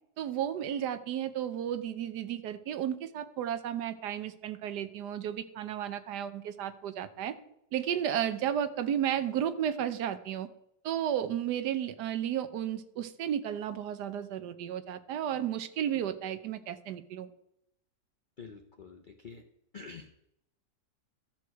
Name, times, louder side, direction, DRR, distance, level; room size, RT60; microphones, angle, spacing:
voice 1, 0.2-7.3 7.7-10.5 10.8-17.3, right 10 dB, 70° right, 12 dB, 1.3 m, -33 dB
voice 2, 18.4-19.4 19.7-20.3, left 5 dB, 90° left, 4 dB, 0.4 m, -47 dB
13.5 x 6.5 x 4.6 m, 0.78 s
omnidirectional pair, 1.9 m